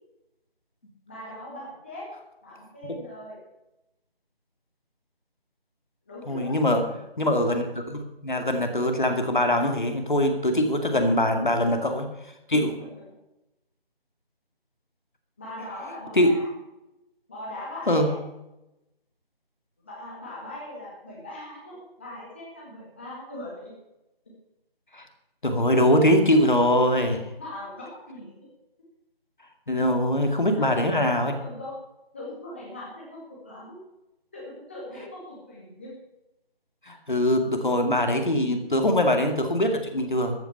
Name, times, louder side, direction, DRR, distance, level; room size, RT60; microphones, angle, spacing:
voice 1, 1.1-2.1 2.4-3.4 6.1-6.6 15.4-16.5 17.3-18.2 19.8-23.7 27.4-28.3 30.5-30.7 31.0-31.1 31.4-31.8 32.1-33.7 34.3-35.9, left 1 dB, 10° left, -5 dB, 1.8 m, -40 dB
voice 2, 6.3-6.8 7.2-12.1 12.5-12.8 16.1-16.3 17.9-18.1 24.9-25.0 25.4-27.2 29.7-31.3 36.9-40.3, left 1 dB, 50° left, 5 dB, 2.3 m, -22 dB
14.0 x 9.1 x 6.8 m, 0.92 s
figure-of-eight pair, 165°, 30 cm